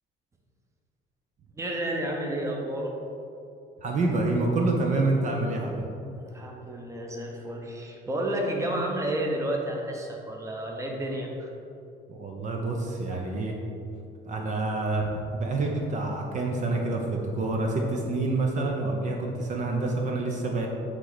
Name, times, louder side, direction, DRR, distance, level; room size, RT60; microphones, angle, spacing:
voice 1, 1.5-2.9 6.1-11.5, right 1 dB, 15° right, 0 dB, 0.9 m, -31 dB
voice 2, 3.8-5.9 12.1-13.6 14.3-20.7, right 2 dB, 45° right, 1 dB, 0.8 m, -27 dB
9.1 x 3.3 x 4.0 m, 2.7 s
cardioid pair, 110°, 17 cm